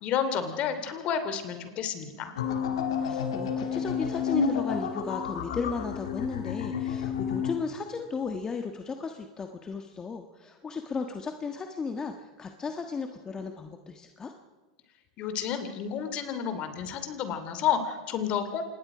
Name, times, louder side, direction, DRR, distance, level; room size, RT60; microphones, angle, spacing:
voice 1, 0.0-2.3 15.2-18.6, left 8 dB, 45° left, 9 dB, 2.8 m, -30 dB
sound 1, 2.4-7.6, left 6 dB, 80° left, 2.1 m, -30 dB
voice 2, 3.0-14.3, left 5 dB, 20° left, 5 dB, 1.5 m, -35 dB
26.5 x 20.0 x 5.0 m, 1.3 s
hypercardioid pair, 105°, 3 cm